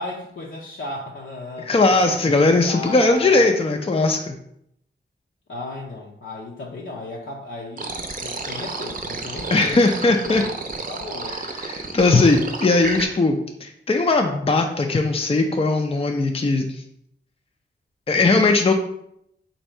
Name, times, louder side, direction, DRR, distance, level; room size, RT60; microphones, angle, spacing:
voice 1, 0.0-1.7 2.0-3.5 3.8-4.1 5.5-9.8 10.1-10.6 10.9-11.4, left 2 dB, 70° left, -3 dB, 0.7 m, -35 dB
voice 2, 1.6-4.4 9.5-10.4 11.6-16.7 18.1-18.7, left 3 dB, 30° left, 3 dB, 0.4 m, -19 dB
sound 1, 7.8-13.1, right 3 dB, 40° right, 0.6 m, -31 dB
4.0 x 2.7 x 4.4 m, 0.75 s
wide cardioid pair, 70°, 21 cm